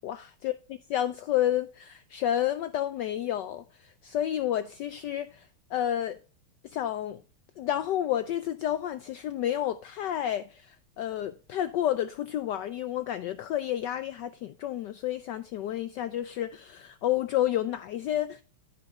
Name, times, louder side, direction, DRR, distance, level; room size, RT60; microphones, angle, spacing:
voice 1, 0.0-6.2 6.6-7.2 7.6-18.4, left 11 dB, 80° left, 0.9 m, -30 dB
14.5 x 5.5 x 3.1 m
omnidirectional pair, 2.4 m